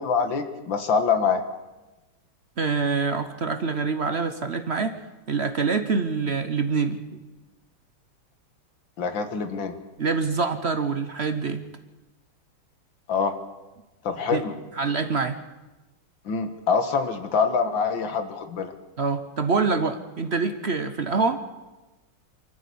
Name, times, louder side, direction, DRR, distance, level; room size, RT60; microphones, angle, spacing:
voice 1, 0.0-1.4 9.0-9.8 13.1-13.4 14.0-14.5 16.3-18.7, left 5 dB, 60° left, 8 dB, 2.2 m, -25 dB
voice 2, 2.6-5.0 5.3-7.2 10.0-11.6 14.3-14.4 14.8-15.4 19.0-21.4, right 4 dB, 55° right, 9 dB, 0.7 m, -25 dB
24.0 x 14.0 x 8.5 m, 1.1 s
omnidirectional pair, 2.4 m